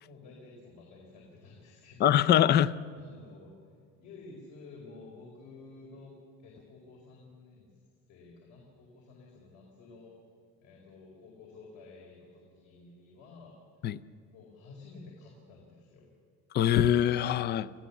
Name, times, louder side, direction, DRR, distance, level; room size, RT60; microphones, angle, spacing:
voice 1, 0.0-2.3 2.9-3.6 4.0-6.1 6.4-7.8 8.1-10.1 10.6-13.6 14.3-16.1, left 3 dB, 70° left, -2 dB, 4.7 m, -52 dB
voice 2, 2.0-2.7 13.8-14.0 16.5-17.7, left 10 dB, 35° left, 17 dB, 0.4 m, -23 dB
28.0 x 16.0 x 7.2 m, 2.3 s
cardioid pair, 165°, 31 cm